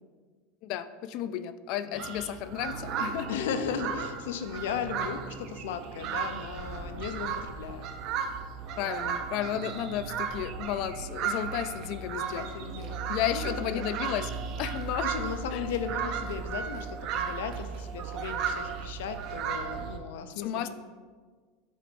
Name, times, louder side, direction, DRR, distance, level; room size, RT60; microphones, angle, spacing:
voice 1, 0.6-3.3 8.8-12.4 13.1-14.3 14.6-15.1 15.5-15.7 20.4-20.7, left 11 dB, 45° left, 13 dB, 0.3 m, -33 dB
sound 1, 1.9-20.0, right 6 dB, 40° right, 0.6 m, -35 dB
voice 2, 3.3-7.9 12.1-13.8 15.0-20.7, left 7 dB, 85° left, 9 dB, 0.6 m, -36 dB
7.5 x 3.9 x 5.2 m, 1.5 s
supercardioid pair, 165°, 0 cm